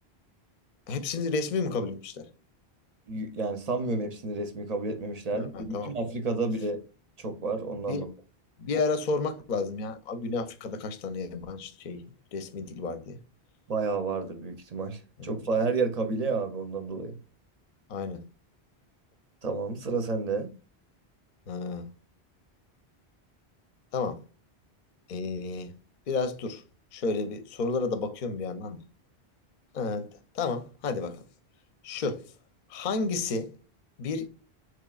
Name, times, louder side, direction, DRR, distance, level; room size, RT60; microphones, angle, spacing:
voice 1, 0.9-2.3 5.5-5.9 7.9-8.1 8.6-12.0 12.3-13.2 17.9-18.2 21.5-21.9 23.9-24.2 25.1-25.7 26.1-26.6 26.9-28.8 29.7-30.1 30.3-31.2 31.8-32.2 32.7-33.5 34.0-34.3, left 4 dB, 55° left, 0.6 m, -31 dB
voice 2, 3.1-6.8 7.2-8.1 13.7-17.2 19.4-20.5, right 3 dB, 45° right, 0.6 m, -30 dB
3.9 x 3.1 x 2.3 m
omnidirectional pair, 1.1 m